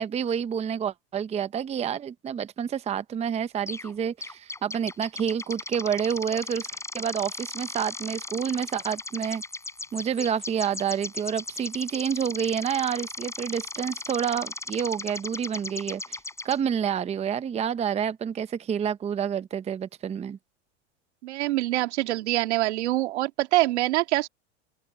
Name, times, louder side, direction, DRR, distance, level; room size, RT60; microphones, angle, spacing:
voice 1, 0.0-9.4 9.9-20.4, right 8 dB, 20° right, 0.8 m, -29 dB
sound 1, 3.7-3.9 4.2-16.6, left 2 dB, 10° left, 7.7 m, -37 dB
voice 2, 21.2-24.3, right 17 dB, 80° right, 2.1 m, -25 dB
supercardioid pair, 125°, 34 cm